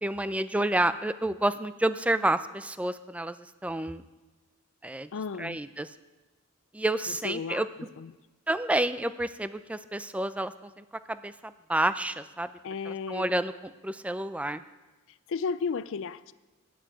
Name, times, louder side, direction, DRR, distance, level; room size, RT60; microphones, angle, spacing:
voice 1, 0.0-3.4 3.6-4.0 4.8-5.1 5.4-5.9 6.7-7.7 8.5-12.5 12.9-13.5 13.8-14.6, right 1 dB, 5° right, 13 dB, 0.4 m, -29 dB
voice 2, 5.1-5.6 7.1-8.1 12.6-13.3 15.1-16.3, left 5 dB, 60° left, 16 dB, 0.4 m, -34 dB
10.5 x 7.4 x 8.8 m, 1.2 s
head